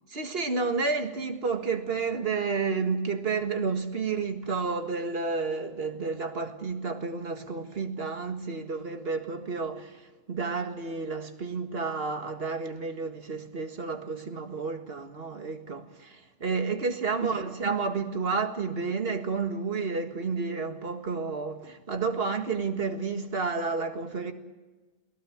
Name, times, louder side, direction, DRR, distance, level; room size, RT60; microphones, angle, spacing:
voice 1, 0.1-10.0 10.3-24.3, right 4 dB, 45° right, 2.0 m, -31 dB
22.5 x 18.5 x 7.4 m
omnidirectional pair, 1.4 m